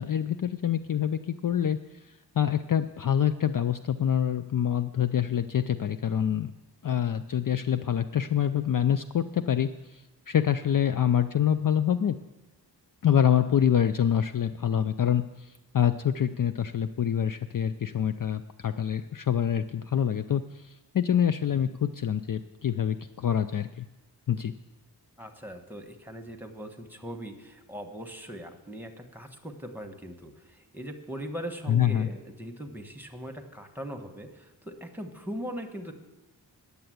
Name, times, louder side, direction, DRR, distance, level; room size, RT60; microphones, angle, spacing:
voice 1, 0.0-1.8 2.4-6.5 6.8-12.2 13.0-23.8 24.3-24.5 31.7-32.1, left 9 dB, 50° left, 10 dB, 0.4 m, -26 dB
voice 2, 25.2-35.9, equal, 5° right, 5 dB, 1.2 m, -40 dB
9.7 x 6.9 x 7.8 m, 1.0 s
wide cardioid pair, 60°, 42 cm